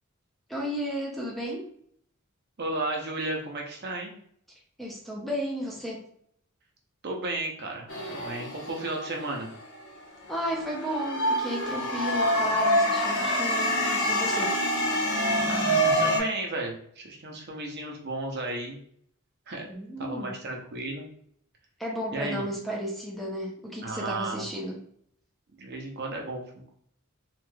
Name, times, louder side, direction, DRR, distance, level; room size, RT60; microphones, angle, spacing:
voice 1, 0.5-1.7 4.8-6.1 10.3-14.6 19.7-20.3 21.8-24.8, equal, ahead, -2 dB, 0.5 m, -33 dB
voice 2, 2.6-4.1 7.0-9.5 15.5-18.8 19.5-19.7 20.0-21.1 22.1-22.5 23.8-24.5 25.6-26.8, right 2 dB, 50° right, 1 dB, 0.6 m, -34 dB
sound 1, 7.9-9.8 10.3-16.2, equal, 60° left, 0.9 m, -26 dB
3.1 x 2.8 x 2.2 m, 0.64 s
head